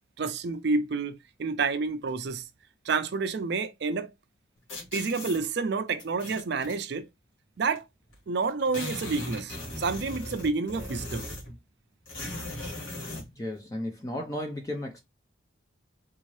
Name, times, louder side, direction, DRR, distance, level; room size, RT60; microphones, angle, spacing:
voice 1, 0.2-2.4 2.8-4.1 4.9-7.1 7.6-7.8 8.3-11.3, right 4 dB, 55° right, 0.4 m, -29 dB
sound 1, 4.7-5.4 6.0-6.8 7.7-7.8 8.1-8.2 8.4-11.6 12.0-13.3, left 1 dB, 80° left, 1.9 m, -38 dB
voice 2, 13.4-15.0, left 1 dB, 15° left, 0.5 m, -34 dB
3.7 x 2.6 x 3.1 m
head